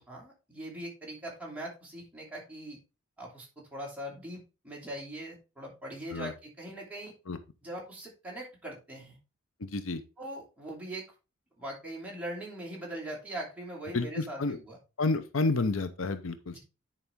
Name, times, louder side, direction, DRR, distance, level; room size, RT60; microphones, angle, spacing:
voice 1, 0.1-2.8 3.2-7.1 7.6-9.2 10.2-11.0 11.6-14.8 16.5-16.6, right 1 dB, 5° right, -4 dB, 2.9 m, -41 dB
voice 2, 9.6-10.0 13.9-14.6 15.0-16.6, left 3 dB, 75° left, 11 dB, 0.7 m, -30 dB
9.8 x 4.9 x 3.6 m, 0.30 s
head